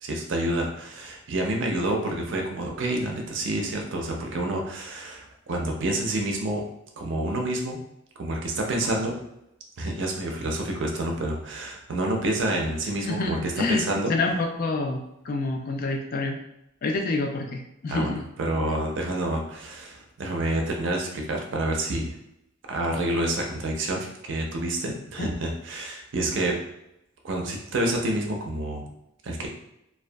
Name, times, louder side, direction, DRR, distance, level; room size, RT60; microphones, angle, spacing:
voice 1, 0.0-6.6 7.0-7.8 8.2-9.2 9.8-14.1 17.9-18.1 18.4-22.2 22.7-26.6 27.2-28.9 29.2-29.5, right 1 dB, 65° right, 1 dB, 0.5 m, -28 dB
voice 2, 13.0-16.4 16.8-18.2 25.2-25.3, left 3 dB, 45° left, 3 dB, 0.3 m, -27 dB
2.6 x 2.2 x 2.2 m, 0.83 s
head